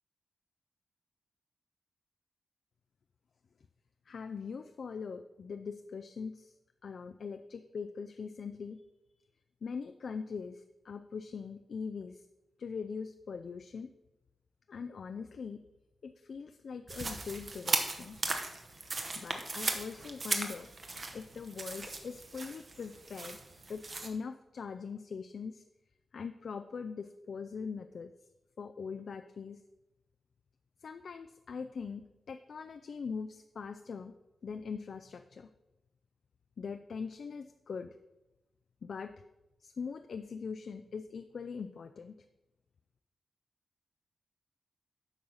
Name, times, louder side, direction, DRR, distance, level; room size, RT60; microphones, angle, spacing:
voice 1, 4.1-6.5 6.8-8.8 9.6-12.2 12.6-13.9 14.7-15.6 16.0-18.2 19.1-20.7 21.1-23.4 23.7-25.6 26.1-28.1 28.6-29.6 30.8-34.1 34.4-35.5 36.6-38.0 38.8-39.1 39.6-42.2, left 5 dB, 55° left, 8 dB, 0.4 m, -42 dB
sound 1, 16.9-24.1, right 3 dB, 35° right, 1.1 m, -37 dB
8.7 x 5.5 x 6.3 m, 0.99 s
wide cardioid pair, 130°, 0 cm